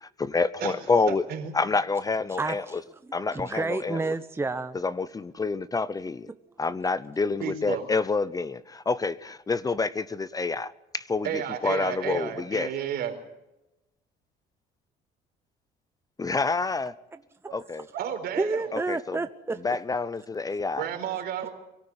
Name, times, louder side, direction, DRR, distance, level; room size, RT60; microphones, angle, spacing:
voice 1, 0.0-1.2 1.5-2.8 3.1-4.1 4.7-6.3 6.6-12.7 16.2-16.9 17.5-17.9 18.7-19.2 19.6-20.9, left 4 dB, 20° left, 16 dB, 0.7 m, -28 dB
voice 2, 1.1-1.5 7.4-7.8 11.2-13.1 17.5-17.6 17.9-18.6 20.8-21.5, right 9 dB, 70° right, 5 dB, 4.3 m, -32 dB
voice 3, 2.3-2.9 3.3-4.8 18.4-19.6, right 3 dB, 15° right, 10 dB, 0.9 m, -30 dB
23.5 x 13.5 x 9.9 m, 0.93 s
cardioid pair, 110°, 17 cm